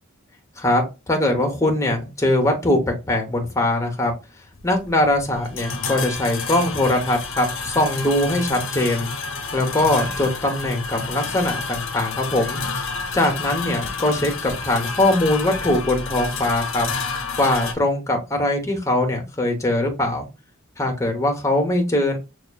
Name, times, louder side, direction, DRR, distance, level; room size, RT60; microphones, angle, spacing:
voice 1, 0.6-4.1 4.6-9.1 9.5-12.6 13.1-16.9 17.4-20.2 20.8-22.2, left 1 dB, 15° left, 3 dB, 0.8 m, -21 dB
sound 1, 4.6-17.7, left 4 dB, 65° left, 0.6 m, -29 dB
5.7 x 2.4 x 2.2 m, 0.27 s
head